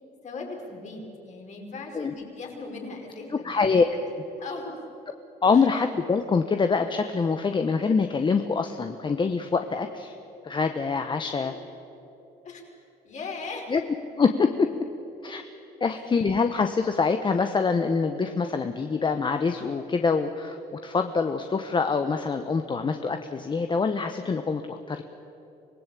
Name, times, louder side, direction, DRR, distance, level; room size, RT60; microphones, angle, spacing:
voice 1, 0.2-3.7 4.4-4.8 5.5-5.7 11.4-12.0 12.4-12.6 13.0-13.7 15.8-16.2, left 3 dB, 45° left, 1 dB, 5.2 m, -39 dB
voice 2, 3.4-3.8 5.4-10.1 10.4-11.5 13.7-13.8 14.2-14.7 15.2-15.4 15.8-20.6 20.8-25.0, left 4 dB, 30° left, 7 dB, 1.1 m, -25 dB
25.5 x 18.0 x 8.4 m, 3.0 s
cardioid pair, 110°, 17 cm